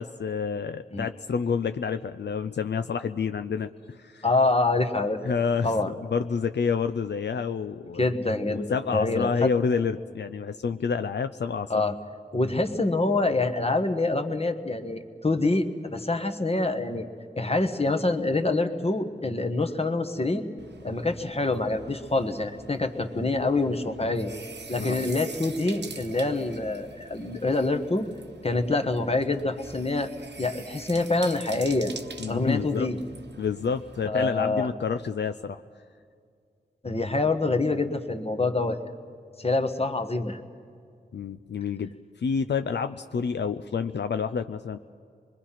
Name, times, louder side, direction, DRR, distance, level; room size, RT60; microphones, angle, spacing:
voice 1, 0.0-4.2 5.2-8.1 8.5-11.8 24.8-25.1 32.2-32.9 33.4-35.6 41.1-44.8, left 6 dB, 80° left, 9 dB, 0.5 m, -29 dB
voice 2, 4.2-5.3 5.6-5.9 8.0-9.5 11.7-11.9 12.3-17.1 17.3-20.4 20.8-24.3 24.7-28.1 28.4-30.1 30.4-31.9 32.3-33.0 34.0-34.7 36.8-38.8 39.4-40.4, left 2 dB, 35° left, 7 dB, 1.4 m, -26 dB
sound 1, 20.6-34.1, right 4 dB, 85° right, 1.2 m, -45 dB
25.5 x 21.5 x 5.8 m, 2.2 s
wide cardioid pair, 50°, 18 cm